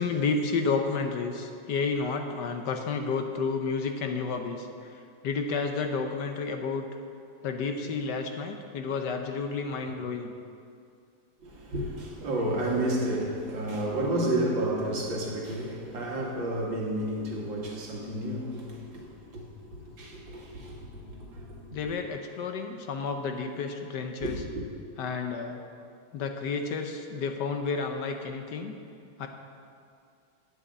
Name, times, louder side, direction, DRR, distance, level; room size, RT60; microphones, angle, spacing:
voice 1, 0.0-6.9 7.4-10.3 21.7-24.5 25.0-25.6 26.1-28.7 29.2-29.3, left 4 dB, 65° left, 5 dB, 1.3 m, -31 dB
voice 2, 11.4-19.4 19.7-21.8 24.2-24.4, right 1 dB, 75° right, -2 dB, 2.5 m, -31 dB
9.7 x 7.5 x 7.8 m, 2.4 s
omnidirectional pair, 2.1 m